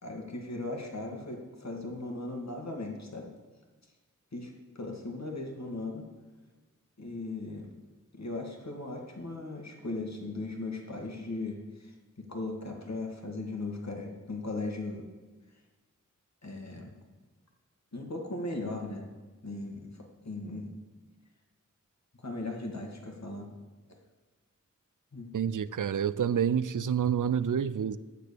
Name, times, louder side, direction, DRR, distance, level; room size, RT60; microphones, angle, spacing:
voice 1, 0.0-3.3 4.3-6.0 7.0-7.7 8.1-15.1 16.4-16.9 17.9-19.1 19.4-20.7 22.2-23.5 25.1-25.3, left 2 dB, 55° left, 2.1 m, -38 dB
voice 2, 25.3-28.0, right 8 dB, 75° right, 0.5 m, -28 dB
9.9 x 6.6 x 6.8 m
wide cardioid pair, 45°, 32 cm